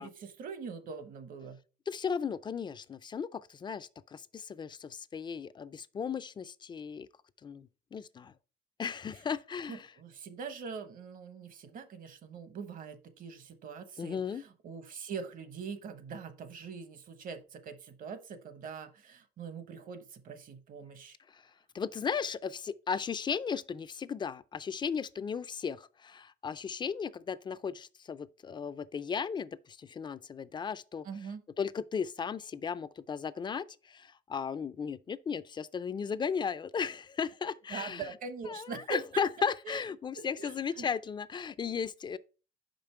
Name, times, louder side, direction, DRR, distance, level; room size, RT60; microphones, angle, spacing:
voice 1, 0.0-1.6 9.7-21.2 31.0-31.4 37.7-39.2 39.6-39.8 40.1-40.9, right 5 dB, 55° right, 1.0 m, -43 dB
voice 2, 1.9-7.1 7.4-8.3 8.8-9.9 14.0-14.4 21.3-21.4 21.7-31.1 31.6-38.1 38.5-42.2, left 6 dB, 25° left, 0.4 m, -36 dB
5.3 x 5.2 x 4.4 m
cardioid pair, 110°, 17 cm